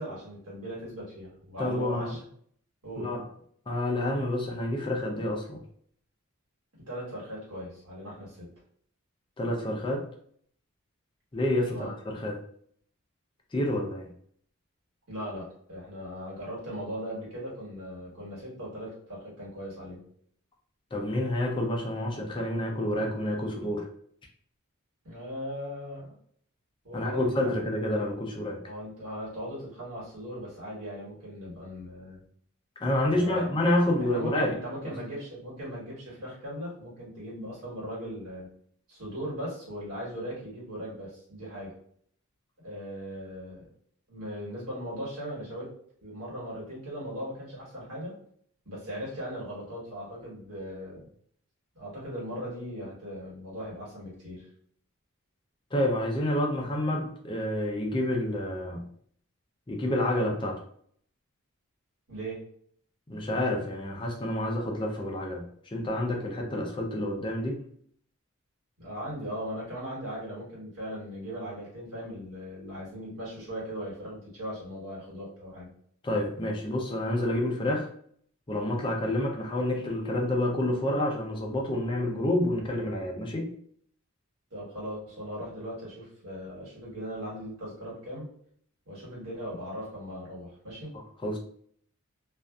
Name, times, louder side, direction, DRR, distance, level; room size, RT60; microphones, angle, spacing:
voice 1, 0.0-2.2 2.8-3.1 6.9-8.5 11.7-11.9 15.1-20.1 25.0-26.1 26.8-27.6 28.7-32.2 33.0-33.5 34.0-38.5 38.9-41.7 42.6-43.7 44.1-45.7 46.0-48.2 48.6-51.1 51.7-54.5 62.1-62.4 68.8-75.7 84.5-88.3 88.9-90.9, equal, 90° right, -5 dB, 1.4 m, -38 dB
voice 2, 1.6-2.1 3.0-3.2 3.7-5.6 9.4-10.0 11.3-12.4 13.5-14.1 20.9-23.9 26.9-28.6 32.8-34.5 55.7-58.8 59.7-60.6 63.1-67.6 76.0-77.9 78.5-83.5 91.2-91.4, left 1 dB, 20° left, 0 dB, 0.4 m, -28 dB
2.6 x 2.3 x 2.3 m, 0.62 s
head